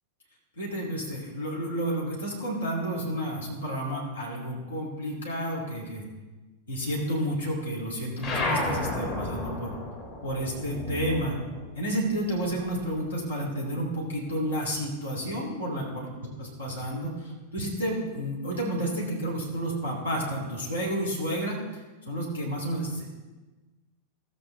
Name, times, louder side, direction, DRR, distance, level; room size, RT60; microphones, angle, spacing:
voice 1, 0.6-6.1 6.7-9.7 10.2-11.4 11.8-16.1 16.4-23.1, right 1 dB, 70° left, -3 dB, 2.6 m, -31 dB
sound 1, 8.2-13.1 13.4-14.8, left 2 dB, 40° left, 2.6 m, -33 dB
15.0 x 7.9 x 3.3 m, 1.2 s
figure-of-eight pair, 90°, 0 cm